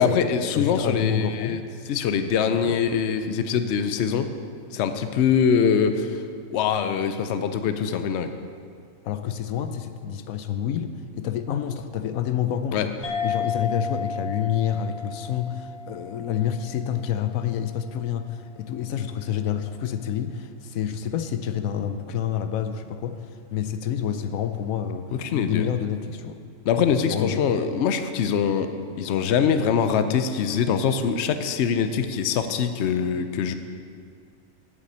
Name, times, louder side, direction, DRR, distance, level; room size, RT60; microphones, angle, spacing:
voice 1, 0.0-1.6 1.9-4.3 4.7-6.2 6.5-8.3 12.7-12.9 25.2-25.7 26.7-28.7 29.0-33.5, left 7 dB, 60° left, 9 dB, 0.9 m, -23 dB
voice 2, 0.5-1.6 2.5-2.7 9.0-12.9 13.2-26.4 26.9-27.5, left 9 dB, 85° left, 9 dB, 1.1 m, -28 dB
sound 1, 13.0-17.9, left 5 dB, 30° left, 1.2 m, -33 dB
8.4 x 7.6 x 8.0 m, 2.2 s
omnidirectional pair, 1.4 m